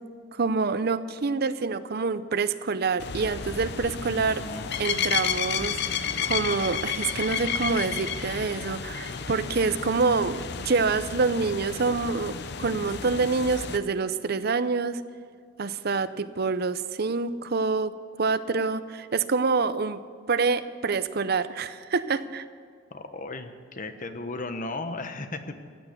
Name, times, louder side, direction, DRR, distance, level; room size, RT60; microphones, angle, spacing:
voice 1, 0.3-4.4 4.8-15.0 15.6-17.9 18.2-20.0 20.3-22.4, right 4 dB, 55° right, 13 dB, 0.6 m, -26 dB
sound 1, 3.0-13.8, left 7 dB, 60° left, 0.7 m, -32 dB
voice 2, 3.9-4.8 22.9-25.5, left 2 dB, 45° left, 8 dB, 1.1 m, -36 dB
15.5 x 9.3 x 8.1 m, 2.1 s
head